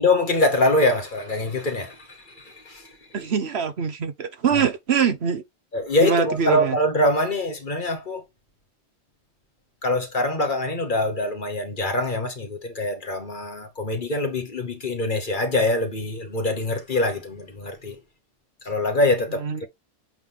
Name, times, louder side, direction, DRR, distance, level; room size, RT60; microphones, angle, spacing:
voice 1, 0.0-2.9 4.5-4.7 5.7-8.2 9.8-18.0 18.6-19.7, left 2 dB, 45° left, 1.7 m, -24 dB
voice 2, 3.1-5.4 6.0-6.8 19.4-19.6, right 6 dB, 70° right, 1.2 m, -23 dB
7.9 x 3.8 x 3.5 m
omnidirectional pair, 1.1 m